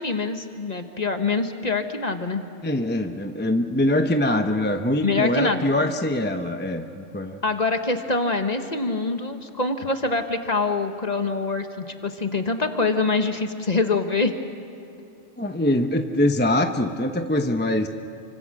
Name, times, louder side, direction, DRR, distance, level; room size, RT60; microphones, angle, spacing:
voice 1, 0.0-2.4 5.0-5.6 7.4-14.3, left 3 dB, 35° left, 6 dB, 1.4 m, -25 dB
voice 2, 2.6-7.4 15.4-17.9, left 1 dB, 10° left, 6 dB, 0.8 m, -23 dB
29.0 x 25.0 x 6.4 m, 2.8 s
omnidirectional pair, 1.2 m